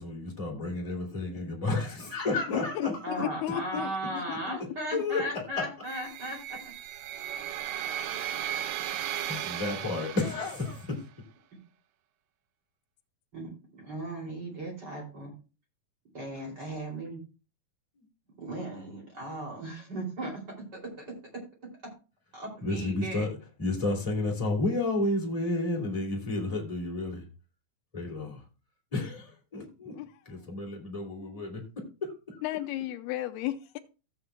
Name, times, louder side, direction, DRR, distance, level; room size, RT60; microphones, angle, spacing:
voice 1, 0.0-3.2 3.7-3.8 4.9-5.6 8.2-8.3 8.9-9.0 9.3-11.0 18.0-18.1 22.6-27.3 27.9-28.4 28.9-29.9 30.2-32.4, left 2 dB, 10° left, 1.9 m, -32 dB
voice 2, 2.5-4.6 4.9-5.0 30.0-30.1 32.4-33.8, left 14 dB, 80° left, 2.6 m, -34 dB
voice 3, 3.0-6.6 13.3-15.3 16.1-17.2 18.4-20.4 22.3-23.3, right 1 dB, 30° right, 2.9 m, -37 dB
sound 1, 5.9-10.9, right 11 dB, 80° right, 2.2 m, -36 dB
15.5 x 8.0 x 2.2 m
omnidirectional pair, 4.4 m